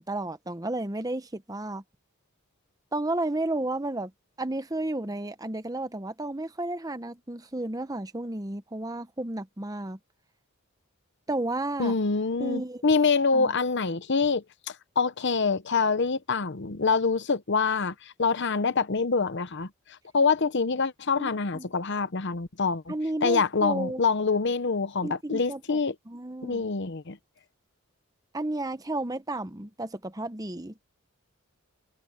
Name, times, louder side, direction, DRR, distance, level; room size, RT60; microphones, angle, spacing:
voice 1, 0.0-1.8 2.9-4.1 4.4-10.0 11.3-12.0 12.4-12.8 13.3-13.5 21.2-21.7 22.9-24.0 25.0-25.8 26.1-26.6 28.3-30.7, right 2 dB, 15° right, 0.9 m, -32 dB
voice 2, 11.8-19.7 20.1-22.9 23.2-25.9 26.4-27.2, left 4 dB, 55° left, 0.8 m, -25 dB
head